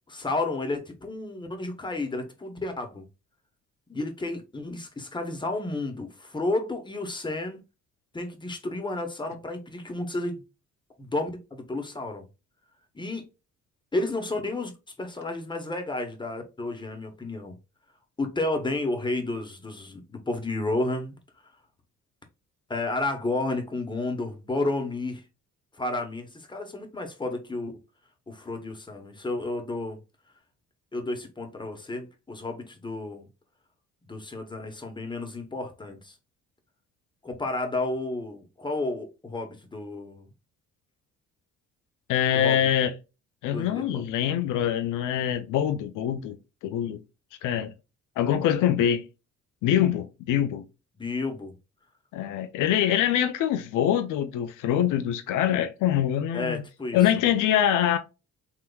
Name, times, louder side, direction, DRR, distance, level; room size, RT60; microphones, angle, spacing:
voice 1, 0.1-3.0 3.9-7.6 8.1-10.4 11.0-12.3 12.9-13.2 13.9-14.7 15.0-17.6 18.2-21.2 22.7-25.2 25.7-27.8 28.3-30.0 30.9-33.3 34.1-36.2 37.2-40.3 42.3-42.7 43.5-44.1 51.0-51.6 56.3-57.0, left 2 dB, 15° left, 1.0 m, -31 dB
voice 2, 42.1-42.9 43.4-46.4 46.6-47.0 47.4-47.7 48.2-49.1 49.6-50.7 52.1-56.6 56.9-58.0, left 10 dB, 85° left, 0.5 m, -24 dB
3.6 x 2.9 x 2.3 m
cardioid pair, 90°, 30 cm